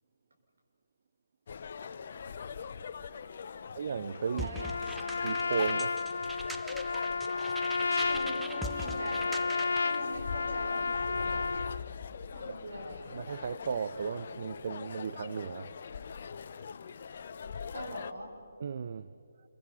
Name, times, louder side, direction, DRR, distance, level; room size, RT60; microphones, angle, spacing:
sound 1, 1.5-18.1, left 6 dB, 50° left, 0.8 m, -42 dB
voice 1, 3.7-4.5 5.2-6.0 13.1-15.7 18.6-19.1, right 6 dB, 50° right, 0.5 m, -35 dB
voice 2, 4.3-5.0 8.1-9.5 9.8-11.6 12.3-13.2 17.7-18.3, right 1 dB, 70° right, 5.9 m, -43 dB
sound 2, 4.4-10.0, equal, 5° right, 0.7 m, -43 dB
Trumpet, 4.6-11.8, left 4 dB, 65° left, 0.4 m, -32 dB
28.0 x 24.0 x 5.6 m
figure-of-eight pair, 145°, 0 cm